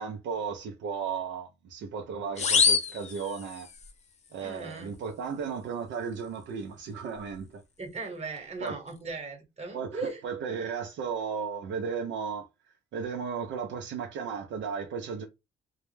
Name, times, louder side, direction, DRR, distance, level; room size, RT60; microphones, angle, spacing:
voice 1, 0.0-3.7 4.3-7.6 8.6-8.8 9.7-12.5 12.9-15.2, right 6 dB, 70° right, 0.5 m, -35 dB
sound 1, 2.4-3.9, left 6 dB, 35° left, 0.5 m, -26 dB
voice 2, 4.4-4.9 7.8-10.2, right 3 dB, 35° right, 1.1 m, -38 dB
2.2 x 2.0 x 3.1 m
cardioid pair, 90°, 20 cm